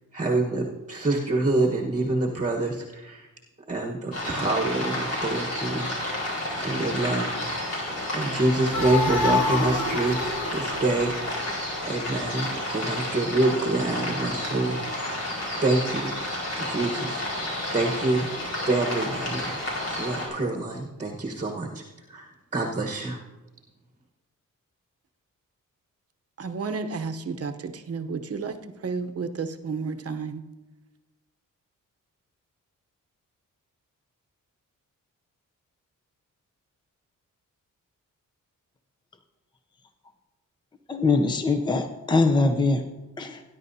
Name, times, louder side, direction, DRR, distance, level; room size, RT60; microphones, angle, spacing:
voice 1, 0.1-3.3 3.7-6.3 6.6-7.3 8.1-10.2 10.5-11.1 11.8-12.5 12.7-15.2 15.6-16.1 16.7-17.4 17.7-18.3 18.7-19.5 19.9-21.8 22.1-23.2, right 2 dB, 20° right, 1 dB, 1.2 m, -26 dB
sound 1, 4.1-20.3, left 1 dB, 55° left, 5.0 m, -31 dB
sound 2, 8.7-12.2, left 3 dB, 80° left, 2.0 m, -28 dB
voice 2, 26.4-30.4, right 4 dB, 45° right, 7 dB, 0.9 m, -32 dB
voice 3, 40.9-42.8 43.2-43.4, left 3 dB, 15° left, 7 dB, 0.6 m, -22 dB
19.0 x 10.5 x 2.7 m, 1.1 s
wide cardioid pair, 130°, 33 cm